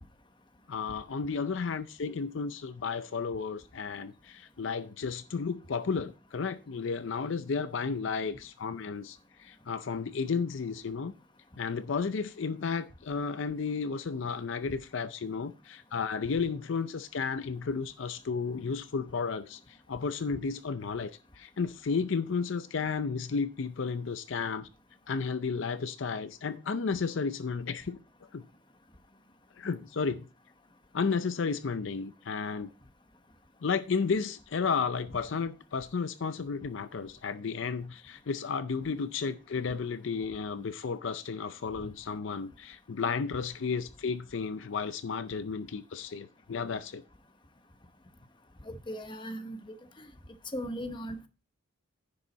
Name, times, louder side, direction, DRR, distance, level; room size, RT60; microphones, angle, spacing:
voice 1, 0.7-11.1 11.6-24.7 25.1-28.0 28.3-28.4 29.6-30.2 30.9-32.7 33.6-47.0, left 5 dB, 60° left, 0.5 m, -33 dB
voice 2, 48.6-50.1 50.5-51.3, equal, 20° left, 0.9 m, -38 dB
10.0 x 6.9 x 4.0 m
head